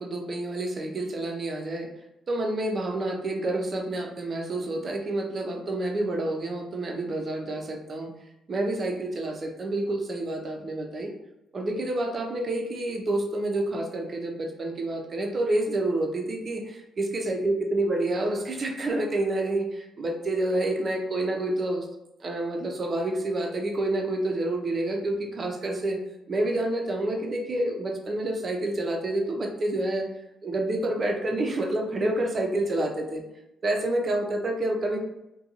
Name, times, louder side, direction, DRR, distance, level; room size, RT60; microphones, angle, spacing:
voice 1, 0.0-1.9 2.3-8.1 8.5-11.1 11.5-21.9 22.2-26.0 26.3-30.1 30.4-33.2 33.6-35.0, right 1 dB, 40° right, 2 dB, 0.5 m, -28 dB
2.6 x 2.2 x 2.8 m, 0.90 s
cardioid pair, 90°, 0 cm